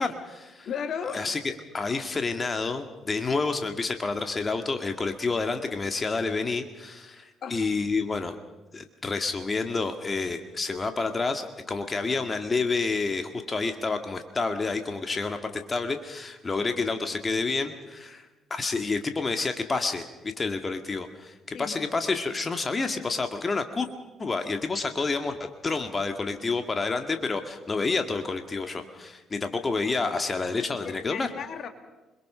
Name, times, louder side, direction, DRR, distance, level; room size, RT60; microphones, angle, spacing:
voice 1, 0.0-0.7 1.0-8.4 8.7-23.9 24.2-25.4 25.6-31.3, left 4 dB, 30° left, 6 dB, 2.0 m, -29 dB
voice 2, 0.7-1.3 7.4-7.6 10.7-10.8 21.5-21.7 30.8-31.7, left 7 dB, 50° left, 7 dB, 2.1 m, -34 dB
28.0 x 22.0 x 5.7 m, 1.1 s
figure-of-eight pair, 45°, 0 cm